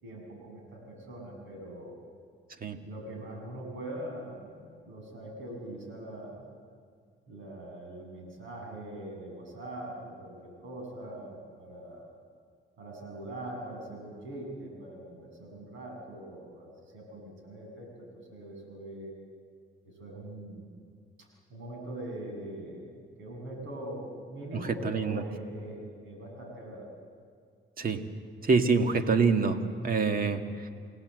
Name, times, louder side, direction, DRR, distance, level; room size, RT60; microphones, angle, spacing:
voice 1, 0.0-2.0 2.8-6.4 7.3-12.1 12.8-19.1 19.8-20.7 21.5-27.0, right 1 dB, 80° right, 1 dB, 7.1 m, -42 dB
voice 2, 24.8-25.2 27.8-28.0 28.4-29.6 29.8-30.4, right 4 dB, 45° right, 7 dB, 1.8 m, -25 dB
28.0 x 18.0 x 7.9 m, 2.1 s
cardioid pair, 90°, 20 cm